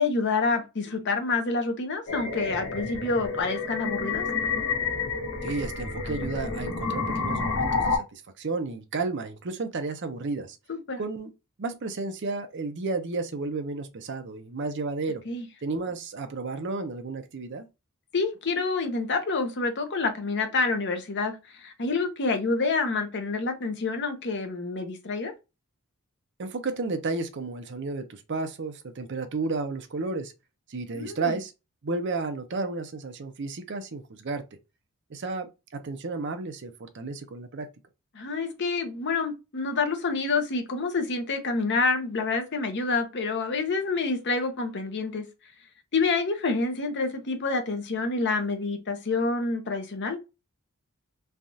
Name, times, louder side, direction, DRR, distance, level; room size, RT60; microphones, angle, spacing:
voice 1, 0.0-4.2 10.7-11.0 15.3-15.5 18.1-25.3 30.9-31.4 38.1-45.2 45.9-50.2, left 3 dB, 55° left, 0.7 m, -28 dB
sound 1, 2.1-8.0, left 4 dB, 80° left, 1.3 m, -29 dB
voice 2, 5.4-10.6 11.0-11.3 11.6-15.2 15.6-17.7 26.4-30.3 30.7-31.5 31.8-34.4 35.1-37.7, right 3 dB, 55° right, 0.6 m, -32 dB
3.3 x 2.4 x 2.6 m
head